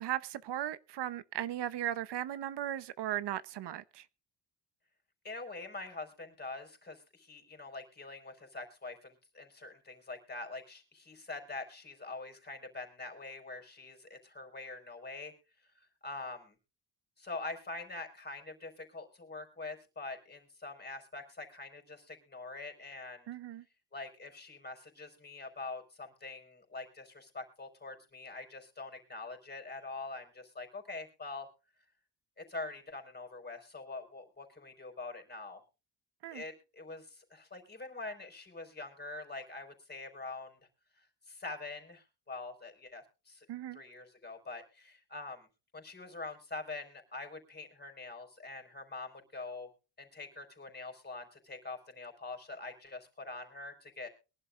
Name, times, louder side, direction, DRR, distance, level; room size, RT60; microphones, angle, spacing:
voice 1, 0.0-4.0 23.3-23.6 36.2-36.4 43.5-43.8, right 12 dB, 85° right, 0.9 m, -37 dB
voice 2, 5.2-15.3 15.7-16.5 17.2-23.3 23.9-31.5 32.4-35.6 36.3-40.6 41.0-43.5 43.7-45.5 45.7-49.7 50.0-54.1, left 3 dB, 25° left, 4.5 m, -44 dB
23.0 x 11.5 x 2.5 m
cardioid pair, 115°, 40 cm